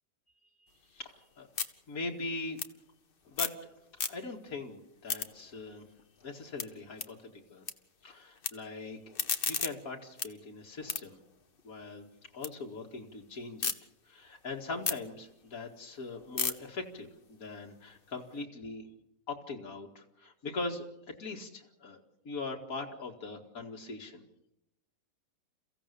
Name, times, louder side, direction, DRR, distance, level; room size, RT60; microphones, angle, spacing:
sound 1, 0.7-3.7 3.9-4.5 4.8-7.7 8.0-8.5 8.9-12.5 12.9-13.7 14.2-18.4, left 5 dB, 40° left, 1.2 m, -38 dB
voice 1, 0.9-1.5 1.9-2.6 3.3-3.7 4.1-5.8 6.2-7.6 8.0-11.2 11.6-12.1 12.3-13.7 14.1-18.9 19.3-24.2, left 3 dB, 75° left, 0 dB, 2.5 m, -41 dB
29.5 x 15.5 x 6.9 m, 0.83 s
omnidirectional pair, 1.5 m